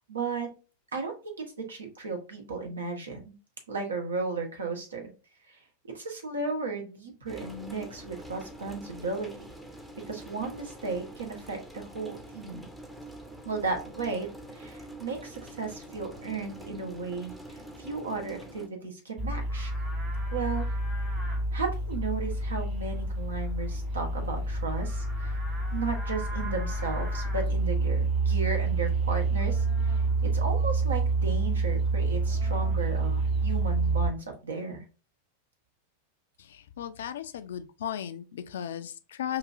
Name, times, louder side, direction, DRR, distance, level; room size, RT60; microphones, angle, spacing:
voice 1, 0.1-0.5 0.9-1.3 1.7-3.3 3.7-5.0 5.5-5.6 5.9-9.5 10.1-12.7 13.4-19.7 20.3-20.6 21.5-25.4 25.7-34.8, right 4 dB, 70° right, 0.9 m, -35 dB
sound 1, 7.3-18.7, right 1 dB, 10° right, 0.6 m, -45 dB
Livestock farm animals working animals, 19.2-34.1, right 3 dB, 30° right, 1.6 m, -28 dB
voice 2, 36.5-39.4, left 10 dB, 60° left, 0.3 m, -36 dB
4.8 x 2.6 x 2.4 m
figure-of-eight pair, 90°, 0 cm